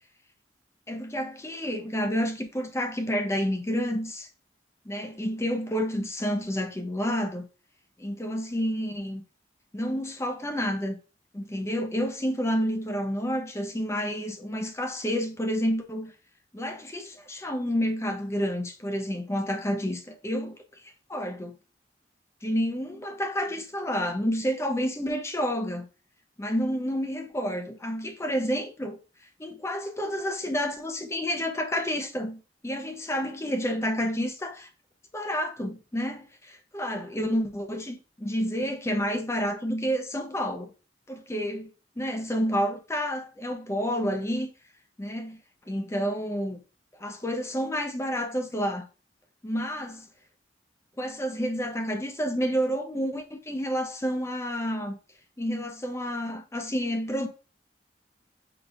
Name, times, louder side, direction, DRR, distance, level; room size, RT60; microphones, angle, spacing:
voice 1, 0.9-4.3 4.8-7.4 8.0-9.2 9.7-11.0 11.3-16.1 16.5-20.8 21.1-21.5 22.4-25.9 26.4-29.0 29.4-34.7 35.1-40.7 41.1-44.5 45.0-45.4 45.7-46.6 47.0-48.9 49.4-50.1 51.0-55.0 55.4-57.3, equal, 15° left, 0.6 m, -29 dB
5.2 x 3.9 x 2.4 m
head